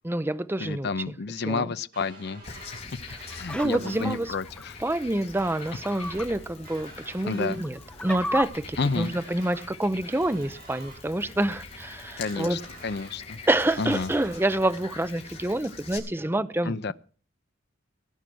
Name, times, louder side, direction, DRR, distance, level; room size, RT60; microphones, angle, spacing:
voice 1, 0.0-1.1 1.5-1.7 3.1-3.2 3.5-4.3 4.8-12.6 13.5-16.9, right 1 dB, 10° right, 0.6 m, -27 dB
voice 2, 0.6-2.8 3.3-4.8 7.2-7.6 8.8-9.1 12.2-13.4 13.8-14.1 16.6-16.9, left 4 dB, 55° left, 0.6 m, -30 dB
sound 1, 1.9-2.9 3.2-4.2 5.4-6.3 6.6-7.6 8.8-9.7 10.0-11.0 12.2-13.1 13.5-14.5, right 2 dB, 45° right, 6.9 m, -48 dB
Frog, 2.4-16.0, left 3 dB, 35° left, 4.0 m, -44 dB
sound 2, 3.3-4.6 5.6-6.3 6.7-6.8 7.5-8.4, left 1 dB, 5° left, 1.0 m, -35 dB
17.5 x 9.0 x 6.2 m
head